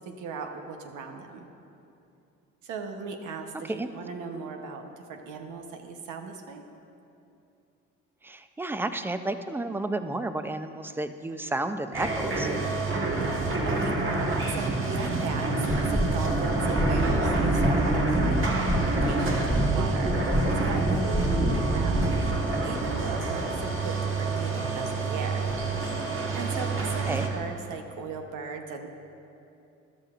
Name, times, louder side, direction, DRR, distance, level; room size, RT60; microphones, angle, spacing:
voice 1, 0.0-1.5 2.6-6.6 13.2-25.5 26.3-28.9, right 4 dB, 85° right, 4 dB, 0.9 m, -38 dB
voice 2, 8.2-12.5 21.4-21.5 27.1-27.3, right 2 dB, 5° right, 9 dB, 0.4 m, -32 dB
sound 1, 11.9-27.3, right 3 dB, 45° right, 1.4 m, -28 dB
sound 2, 15.6-22.3, right 1 dB, 25° right, 1.7 m, -27 dB
13.5 x 12.0 x 2.5 m, 2.7 s
cardioid pair, 90°, 30 cm